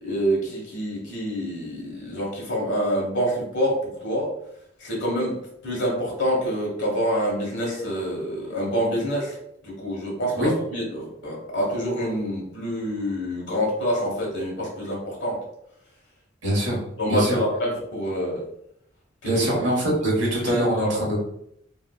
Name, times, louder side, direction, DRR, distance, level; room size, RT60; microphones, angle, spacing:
voice 1, 0.0-4.3 4.8-9.4 9.6-15.4 16.4-16.5 17.0-18.4 19.2-19.3 20.5-21.0, equal, 70° left, -3 dB, 1.3 m, -26 dB
voice 2, 16.4-16.8 17.1-17.4 19.2-21.2, equal, 70° right, -4 dB, 1.3 m, -23 dB
3.3 x 2.6 x 2.3 m, 0.74 s
head